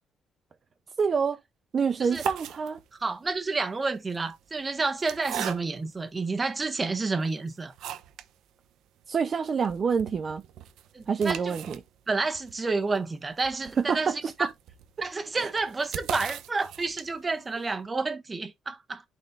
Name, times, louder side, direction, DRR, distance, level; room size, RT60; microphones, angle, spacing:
voice 1, 1.0-1.4 1.7-2.8 9.1-10.4 11.1-11.8 13.8-14.3 15.3-15.5, right 6 dB, 45° right, 0.7 m, -27 dB
sound 1, 1.9-3.1 3.9-6.0 6.6-6.7 7.2-8.3 8.7-8.8 9.0-9.1 9.5-17.4, right 10 dB, 85° right, 0.8 m, -40 dB
voice 2, 3.0-7.7 10.9-11.6 12.1-14.5 15.0-19.0, right 3 dB, 30° right, 1.4 m, -30 dB
11.5 x 4.4 x 2.5 m
cardioid pair, 90°, 0 cm